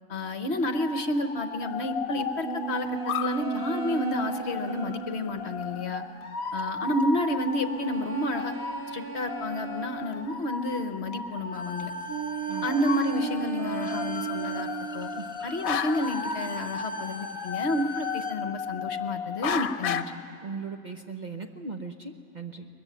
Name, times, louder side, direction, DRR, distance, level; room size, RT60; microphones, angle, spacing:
voice 1, 0.1-6.0 6.5-8.5 8.9-11.9 12.6-15.1 15.4-20.1, left 1 dB, 50° left, 8 dB, 1.2 m, -30 dB
sound 1, 0.7-20.0, left 5 dB, 75° left, 1.2 m, -35 dB
sound 2, 2.4-6.0 7.6-10.5 12.1-15.4, right 8 dB, 75° right, 1.7 m, -35 dB
Bowed string instrument, 11.5-18.4, left 1 dB, 5° right, 0.6 m, -42 dB
voice 2, 20.4-22.7, right 4 dB, 35° right, 4 dB, 0.9 m, -38 dB
22.0 x 21.5 x 8.1 m, 2.5 s
omnidirectional pair, 1.5 m